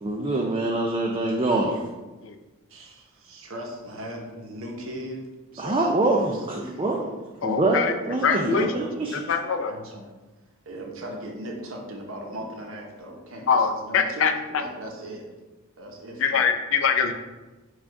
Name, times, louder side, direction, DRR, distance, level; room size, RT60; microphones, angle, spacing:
voice 1, 0.0-1.8 5.6-9.2, right 2 dB, 25° right, -1 dB, 0.3 m, -25 dB
voice 2, 2.7-7.0 8.7-8.9 9.7-10.1 10.7-15.3 15.8-16.5, right 1 dB, 70° right, 1 dB, 0.8 m, -38 dB
voice 3, 7.4-7.9 8.2-8.7 9.1-9.7 13.5-14.3 16.2-17.1, left 6 dB, 65° left, 6 dB, 0.4 m, -23 dB
4.8 x 2.4 x 4.6 m, 1.2 s
head